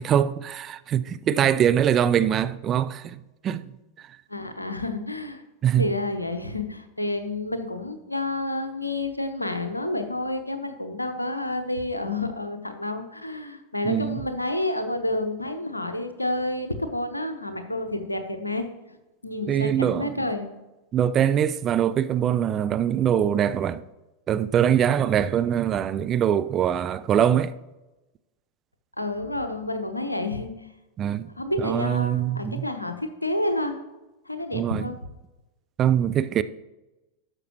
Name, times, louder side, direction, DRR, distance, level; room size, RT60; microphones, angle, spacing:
voice 1, 0.0-3.7 5.6-5.9 13.8-14.2 19.5-20.2 20.9-23.8 24.3-27.5 31.0-31.3 31.6-32.7 34.5-34.9 35.8-36.4, right 9 dB, 30° right, 0.4 m, -23 dB
voice 2, 4.3-5.4 5.7-18.7 19.2-20.5 29.0-30.7 31.4-33.8 34.3-35.0, left 2 dB, 85° left, 0.8 m, -29 dB
12.0 x 6.5 x 3.0 m
figure-of-eight pair, 90°, 0 cm